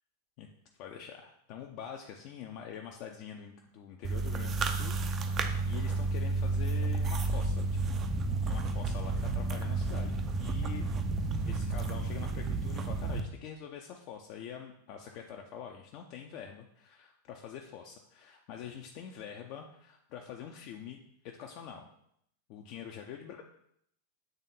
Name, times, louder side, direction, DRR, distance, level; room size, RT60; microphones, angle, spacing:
voice 1, 0.8-5.3 5.7-7.8 8.4-10.9 11.5-21.0 21.2-21.9 22.5-23.4, left 8 dB, 45° left, 2 dB, 0.6 m, -45 dB
sound 1, 4.0-13.2, right 3 dB, 25° right, 0.6 m, -31 dB
8.0 x 3.5 x 4.1 m, 0.70 s
figure-of-eight pair, 90°, 0 cm